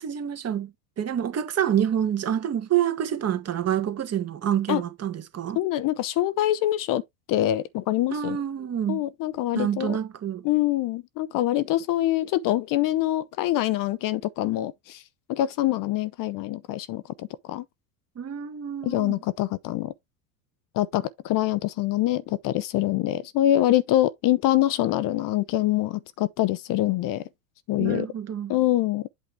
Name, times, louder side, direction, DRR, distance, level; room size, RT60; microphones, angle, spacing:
voice 1, 0.0-5.6 8.1-9.0 9.5-10.4 18.2-19.2 27.8-28.5, right 9 dB, 30° right, 1.8 m, -27 dB
voice 2, 5.6-7.0 7.3-8.4 8.9-10.0 10.4-15.0 15.3-17.6 18.8-19.9 20.7-27.2 27.7-28.1 28.5-29.0, left 14 dB, 45° left, 0.8 m, -25 dB
8.3 x 4.8 x 3.4 m
hypercardioid pair, 90°, 48 cm